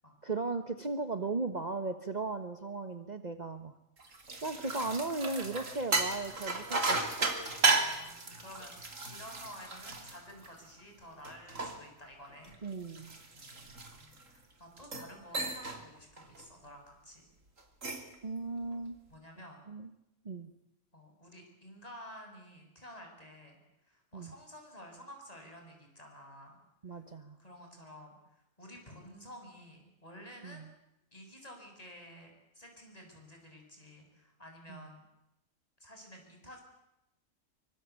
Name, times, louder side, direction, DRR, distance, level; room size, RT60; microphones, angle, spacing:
voice 1, 0.2-3.7 4.4-7.3 12.6-13.2 18.2-19.0 19.7-19.9 20.2-20.5 24.1-24.3 26.8-27.4 30.4-30.7 34.7-34.9, right 3 dB, 35° right, 8 dB, 1.4 m, -37 dB
sound 1, 4.0-10.8 11.2-14.3 14.8-15.1 15.3-15.8 16.2-16.4 17.6-18.1, right 3 dB, 80° right, 3.3 m, -34 dB
voice 2, 7.6-12.5 13.3-17.2 19.1-19.6 20.9-23.6 23.8-26.6 26.9-27.0 27.4-30.7 31.1-35.0 35.8-36.6, equal, 30° left, 2 dB, 7.4 m, -52 dB
25.5 x 24.0 x 8.4 m, 0.88 s
omnidirectional pair, 1.3 m